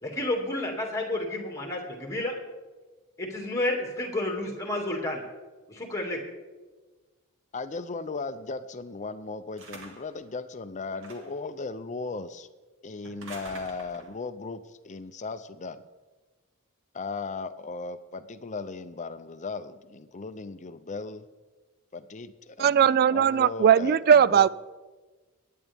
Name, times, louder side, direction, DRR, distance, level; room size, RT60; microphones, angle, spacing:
voice 1, 0.0-2.4 3.2-5.2 5.7-6.2, left 1 dB, 15° left, 1 dB, 2.4 m, -30 dB
voice 2, 7.5-12.5 12.8-15.8 16.9-21.3 21.9-24.5, left 3 dB, 35° left, 11 dB, 0.6 m, -37 dB
sound 1, 9.6-10.2 11.0-11.5 13.0-14.2, right 2 dB, 65° right, 1.9 m, -46 dB
voice 3, 22.6-24.5, right 8 dB, 45° right, 19 dB, 0.3 m, -19 dB
24.5 x 9.5 x 3.6 m, 1.3 s
head